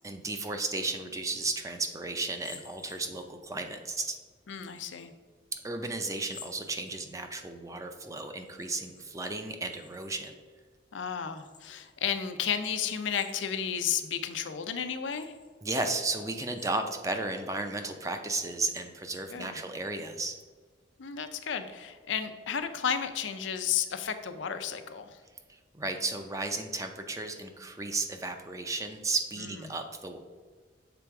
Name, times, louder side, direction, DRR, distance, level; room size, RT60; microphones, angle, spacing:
voice 1, 0.0-4.2 5.6-10.4 15.6-20.4 25.5-30.2, right 3 dB, 15° right, 6 dB, 0.5 m, -34 dB
sound 1, 2.2-3.5 4.5-5.1 6.2-7.3 8.4-9.1 9.4-10.3 11.3-11.9 13.0-13.8 14.4-14.5 15.0-15.5 16.4-17.2 17.6-17.7 18.4-19.4, left 6 dB, 25° left, 0.6 m, -53 dB
voice 2, 4.5-5.1 10.9-15.3 19.3-19.6 21.0-25.2, left 8 dB, 85° left, 8 dB, 0.5 m, -33 dB
7.0 x 3.4 x 4.7 m, 1.5 s
head